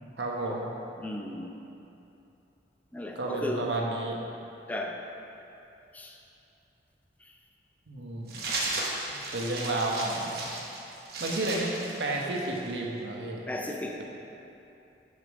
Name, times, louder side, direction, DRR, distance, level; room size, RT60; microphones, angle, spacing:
voice 1, 0.2-0.6 3.1-4.3 7.9-8.4 9.1-10.4 11.2-13.4, right 2 dB, 80° right, -1 dB, 1.0 m, -31 dB
voice 2, 1.0-1.6 2.9-3.6 4.7-5.0 5.9-6.2 7.2-7.3 13.5-14.0, left 1 dB, 10° left, 1 dB, 0.5 m, -35 dB
sound 1, 8.3-12.7, right 2 dB, 60° right, 1.1 m, -35 dB
6.5 x 5.5 x 5.3 m, 2.8 s
head